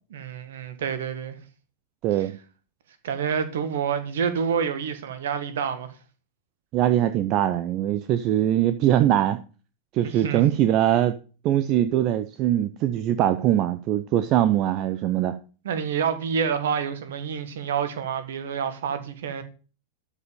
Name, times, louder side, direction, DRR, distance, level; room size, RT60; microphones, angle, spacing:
voice 1, 0.1-1.4 3.0-5.9 10.0-10.5 15.6-19.4, right 7 dB, 60° right, 1.6 m, -28 dB
voice 2, 2.0-2.4 6.7-9.4 9.9-11.1 11.4-15.4, right 12 dB, 40° right, 0.6 m, -22 dB
12.5 x 5.3 x 5.4 m
figure-of-eight pair, 90°, 0 cm